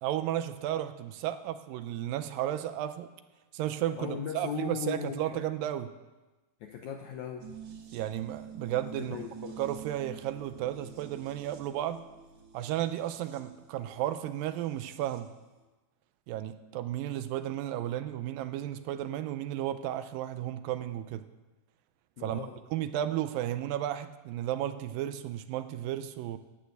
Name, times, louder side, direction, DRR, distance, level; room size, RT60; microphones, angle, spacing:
voice 1, 0.0-3.1 3.5-5.9 7.9-9.2 9.6-12.0 12.5-15.3 16.3-21.2 22.2-26.4, right 12 dB, 80° right, 11 dB, 2.2 m, -33 dB
voice 2, 4.0-5.5 6.6-7.5 9.0-9.6 22.2-22.6, left 6 dB, 80° left, 4 dB, 1.7 m, -38 dB
sound 1, 7.4-15.3 15.6-15.7, right 7 dB, 60° right, 2.7 m, -48 dB
11.5 x 9.2 x 7.9 m, 1.2 s
omnidirectional pair, 4.2 m